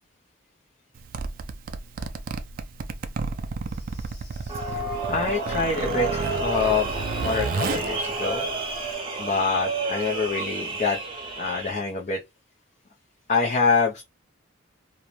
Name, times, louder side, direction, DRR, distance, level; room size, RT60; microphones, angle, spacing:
Zipper (clothing), 0.9-8.9, right 4 dB, 45° right, 0.3 m, -32 dB
voice 1, 3.9-4.6 5.1-8.5 9.2-11.0 11.4-12.2 13.3-14.0, left 4 dB, 40° left, 0.5 m, -26 dB
sound 1, 4.5-11.7, right 3 dB, 25° right, 0.7 m, -30 dB
2.5 x 2.1 x 2.9 m
head